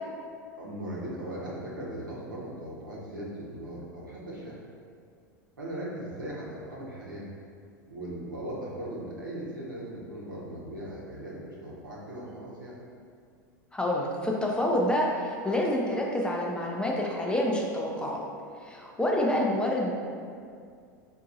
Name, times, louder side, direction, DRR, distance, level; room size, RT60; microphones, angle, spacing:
voice 1, 0.6-4.6 5.6-7.3 7.9-12.8, right 1 dB, 85° right, -6 dB, 0.9 m, -38 dB
voice 2, 13.7-18.2 18.6-19.9, left 1 dB, 10° left, -2 dB, 0.4 m, -27 dB
4.5 x 2.6 x 2.5 m, 2.2 s
hypercardioid pair, 85°, 10 cm